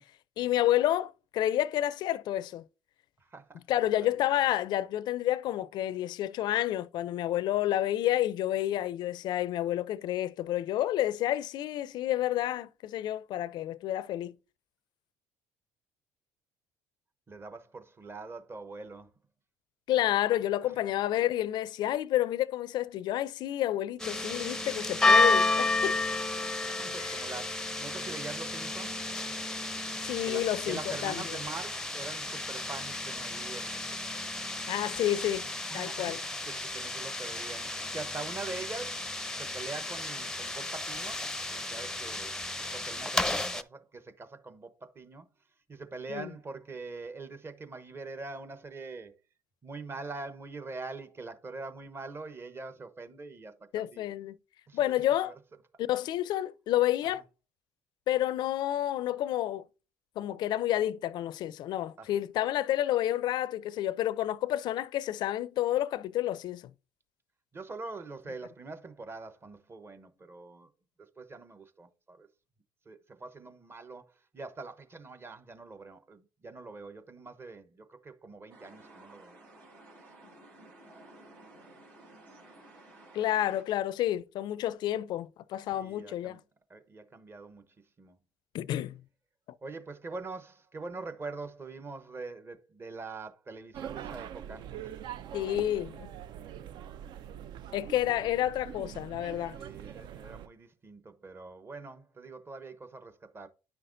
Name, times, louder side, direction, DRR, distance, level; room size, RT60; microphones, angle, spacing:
voice 1, 0.4-2.6 3.7-14.4 19.9-26.0 27.0-27.1 30.0-31.4 34.7-35.5 35.7-36.2 46.1-46.3 53.7-54.4 54.7-55.3 55.8-57.2 58.1-59.6 60.2-66.7 83.1-86.4 88.5-89.0 95.3-96.1 97.7-99.6, left 13 dB, 60° left, 0.4 m, -30 dB
voice 2, 3.3-3.6 4.0-4.2 17.3-19.1 26.4-29.0 30.2-33.8 35.7-36.2 36.4-39.1 39.4-42.3 42.7-45.3 45.7-49.1 49.6-54.2 54.7-54.9 55.2-55.3 62.0-62.1 67.5-70.7 71.2-72.3 72.9-79.4 85.7-86.4 86.7-87.7 88.0-88.2 89.6-94.9 99.5-103.5, right 3 dB, 30° right, 1.0 m, -44 dB
sound 1, 24.0-43.6, left 2 dB, 5° left, 0.6 m, -32 dB
sound 2, 78.5-83.6, right 2 dB, 75° right, 3.7 m, -54 dB
sound 3, 93.7-100.5, right 10 dB, 60° right, 0.4 m, -43 dB
9.8 x 5.7 x 2.6 m
hypercardioid pair, 65°, 8 cm